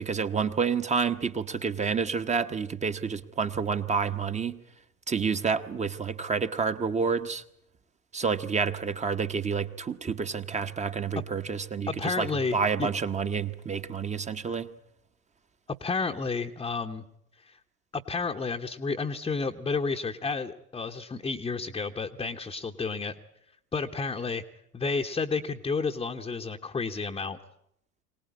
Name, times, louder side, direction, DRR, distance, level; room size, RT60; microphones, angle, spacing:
voice 1, 0.0-4.6 5.1-7.4 8.1-14.7, right 5 dB, 15° right, 9 dB, 0.9 m, -29 dB
voice 2, 11.9-12.9 14.5-14.6 15.8-17.0 17.5-17.6 17.9-23.1 23.7-24.4 24.7-27.4, left 4 dB, 10° left, 2 dB, 0.9 m, -31 dB
24.0 x 18.5 x 9.6 m, 0.78 s
figure-of-eight pair, 80°, 45 cm